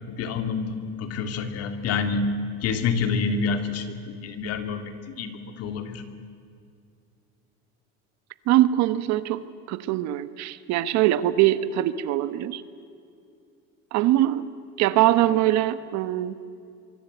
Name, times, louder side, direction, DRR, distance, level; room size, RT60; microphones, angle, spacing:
voice 1, 0.1-2.3 2.6-6.0, left 5 dB, 55° left, 7 dB, 2.6 m, -28 dB
voice 2, 8.5-12.6 13.9-14.4 14.8-16.4, right 14 dB, 65° right, 14 dB, 1.2 m, -22 dB
25.5 x 23.5 x 8.2 m, 2.4 s
cardioid pair, 150°, 30 cm